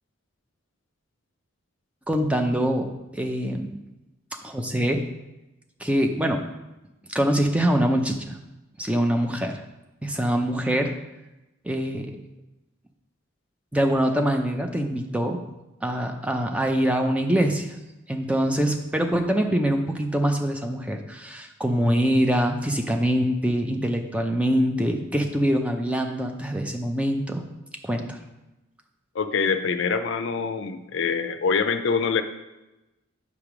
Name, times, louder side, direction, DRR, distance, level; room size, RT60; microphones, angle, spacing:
voice 1, 2.1-3.7 4.4-5.0 5.8-6.4 7.1-8.4 8.8-9.6 10.0-10.9 11.6-12.1 13.7-15.4 15.8-17.8 18.1-27.4 27.8-28.2, equal, 5° right, 4 dB, 0.5 m, -24 dB
voice 2, 29.1-32.2, left 5 dB, 60° left, 10 dB, 0.4 m, -25 dB
8.2 x 3.4 x 6.0 m, 1.0 s
head